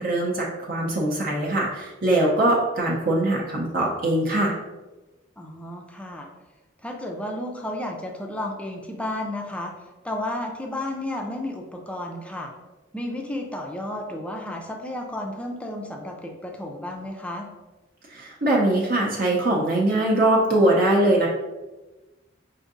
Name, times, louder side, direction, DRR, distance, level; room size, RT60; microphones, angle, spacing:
voice 1, 0.0-4.5 18.1-21.3, right 1 dB, 50° right, -4 dB, 0.6 m, -22 dB
voice 2, 5.4-6.3 6.8-9.7 10.0-12.5 12.9-17.5, left 1 dB, 5° left, 1 dB, 0.4 m, -32 dB
5.0 x 2.6 x 2.5 m, 1.1 s
head